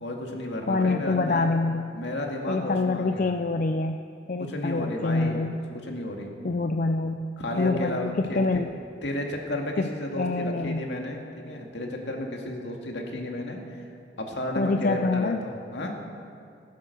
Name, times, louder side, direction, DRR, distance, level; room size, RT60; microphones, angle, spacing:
voice 1, 0.0-1.5 1.9-3.3 4.4-5.4 5.8-6.3 7.4-8.6 9.0-13.8 14.2-16.0, left 1 dB, 75° left, 1 dB, 2.2 m, -32 dB
voice 2, 0.7-1.9 2.5-4.0 4.3-5.6 6.4-7.2 7.5-8.7 9.8-9.9 10.2-10.9 14.6-15.4, left 3 dB, 45° left, 7 dB, 0.5 m, -26 dB
18.0 x 10.5 x 6.8 m, 2.5 s
head